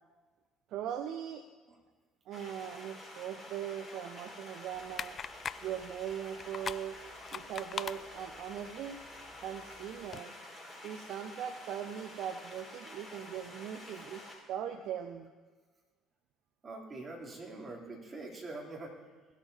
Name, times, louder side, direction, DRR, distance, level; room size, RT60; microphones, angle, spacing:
voice 1, 0.7-1.4 2.3-5.2 5.6-6.9 7.3-9.0 9.4-10.3 10.8-15.3, right 9 dB, 55° right, 9 dB, 0.5 m, -40 dB
sound 1, 2.3-14.4, left 1 dB, 15° left, 4.5 m, -49 dB
sound 2, 4.7-10.2, left 7 dB, 40° left, 0.3 m, -44 dB
voice 2, 16.6-18.9, right 2 dB, 30° right, -3 dB, 3.2 m, -44 dB
17.0 x 12.5 x 2.8 m, 1.3 s
figure-of-eight pair, 55°, 0 cm